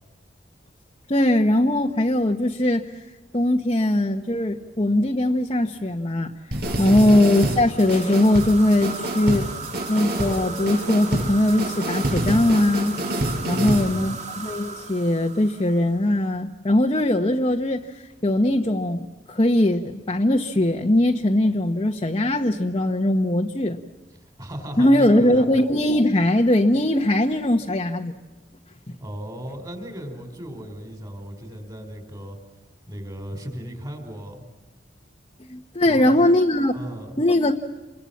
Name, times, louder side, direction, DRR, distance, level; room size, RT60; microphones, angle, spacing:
voice 1, 1.1-2.9 3.3-6.3 6.8-9.5 9.9-13.0 13.4-23.8 24.8-28.1 28.9-29.0 35.5-36.8 37.2-37.5, left 1 dB, 30° left, 1 dB, 1.2 m, -20 dB
sound 1, 6.5-13.9, right 1 dB, 60° right, 6.4 m, -27 dB
voice 2, 6.8-7.2 13.5-14.2 24.4-25.5 29.0-32.4 32.9-34.4 35.8-36.2 36.7-37.2, equal, 20° right, 6 dB, 5.1 m, -35 dB
sound 2, 7.6-16.1, right 4 dB, 40° right, 2.6 m, -37 dB
29.0 x 24.0 x 7.3 m, 1.2 s
head